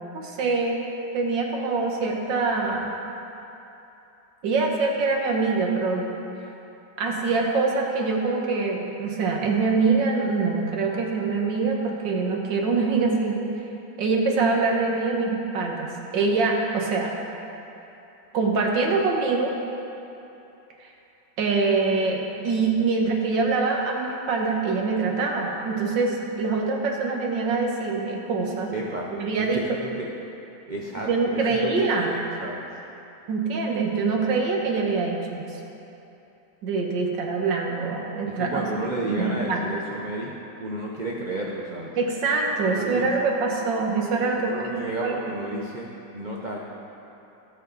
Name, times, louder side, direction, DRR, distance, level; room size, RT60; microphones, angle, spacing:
voice 1, 0.1-0.8 1.1-2.9 4.4-6.1 7.0-13.4 14.0-17.1 18.3-19.5 20.8-20.9 21.4-28.7 29.2-29.6 31.0-32.1 33.3-35.6 36.6-38.6 39.1-39.6 42.0-45.2, right 4 dB, 75° right, 0 dB, 2.0 m, -24 dB
voice 2, 28.7-29.1 29.4-30.1 30.7-32.6 38.3-40.3 40.6-41.9 42.7-43.1 44.3-46.6, right 1 dB, 45° right, -2 dB, 0.6 m, -32 dB
19.0 x 6.9 x 4.1 m, 2.9 s
omnidirectional pair, 2.0 m